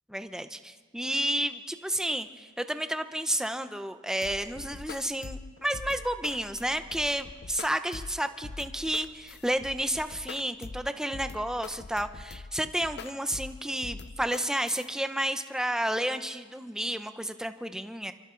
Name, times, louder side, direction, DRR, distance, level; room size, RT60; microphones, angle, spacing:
voice 1, 0.1-18.1, right 1 dB, 5° right, 9 dB, 0.8 m, -31 dB
sound 1, 4.2-14.9, left 4 dB, 55° left, 0.6 m, -43 dB
28.5 x 24.5 x 3.9 m, 1.4 s
head